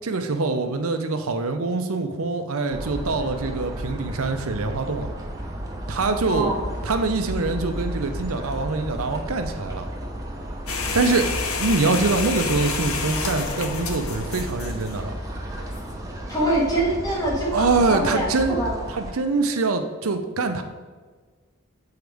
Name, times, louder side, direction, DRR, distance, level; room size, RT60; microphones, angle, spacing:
voice 1, 0.0-5.1 5.9-6.5 6.8-9.9 10.9-11.3 11.6-15.1 17.5-18.6 18.9-20.6, right 3 dB, 80° right, 7 dB, 0.7 m, -24 dB
sound 1, 2.7-19.1, equal, 15° right, 0.8 m, -33 dB
voice 2, 6.3-6.7 16.3-18.8, right 1 dB, 15° left, -5 dB, 1.6 m, -24 dB
sound 2, 10.7-15.9, left 4 dB, 85° left, 0.7 m, -30 dB
7.9 x 4.7 x 3.5 m, 1.4 s
head